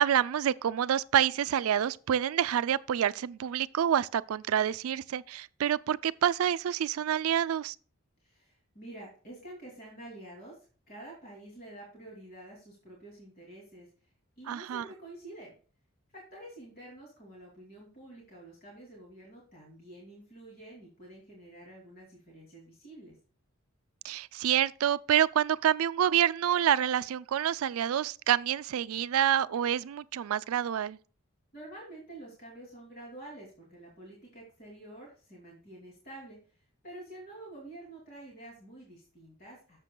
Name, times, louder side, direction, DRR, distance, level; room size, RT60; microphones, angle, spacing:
voice 1, 0.0-7.7 14.5-14.8 24.0-31.0, right 10 dB, 80° right, 0.3 m, -27 dB
voice 2, 8.2-10.6 10.9-13.9 14.4-15.5 16.1-23.2 31.5-36.4 36.8-39.8, right 1 dB, 45° left, 2.5 m, -48 dB
11.0 x 7.4 x 2.2 m
head